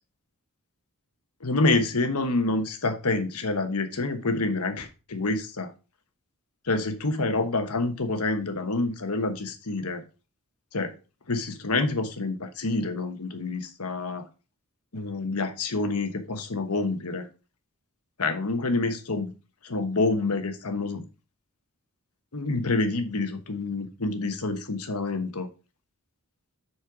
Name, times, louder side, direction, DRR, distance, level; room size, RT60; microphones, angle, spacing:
voice 1, 1.4-5.7 6.7-10.0 10.7-10.9 11.3-14.2 14.9-17.3 18.2-19.3 19.6-21.0 22.3-25.5, left 3 dB, 80° left, 8 dB, 1.2 m, -27 dB
7.6 x 4.4 x 4.9 m, 0.32 s
head